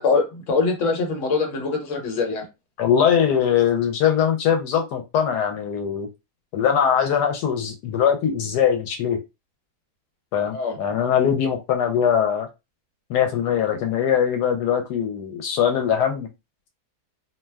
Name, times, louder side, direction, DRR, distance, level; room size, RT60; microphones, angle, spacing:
voice 1, 0.0-2.4 10.5-10.8, left 4 dB, 55° left, 1.1 m, -23 dB
voice 2, 2.8-6.1 6.5-9.2 10.3-12.5 13.1-16.3, left 8 dB, 80° left, 1.1 m, -21 dB
2.7 x 2.1 x 3.3 m
omnidirectional pair, 1.7 m